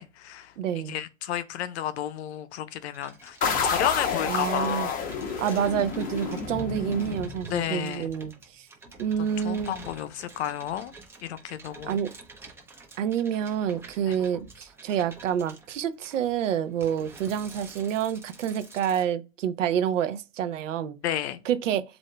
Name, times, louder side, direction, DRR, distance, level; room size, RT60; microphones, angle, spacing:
voice 1, 0.0-3.4 3.6-5.0 7.5-8.1 9.2-10.9 11.2-12.0 14.1-14.2 21.0-21.4, left 11 dB, 55° left, 0.7 m, -32 dB
voice 2, 0.6-1.0 4.3-4.9 5.4-8.7 9.0-9.7 11.9-12.1 13.0-21.0 21.5-21.8, right 9 dB, 70° right, 0.7 m, -28 dB
sound 1, 2.9-19.1, right 3 dB, 5° right, 0.5 m, -49 dB
sound 2, 3.4-7.9, left 5 dB, 20° left, 0.8 m, -30 dB
7.4 x 2.7 x 2.2 m
hypercardioid pair, 125°, 40 cm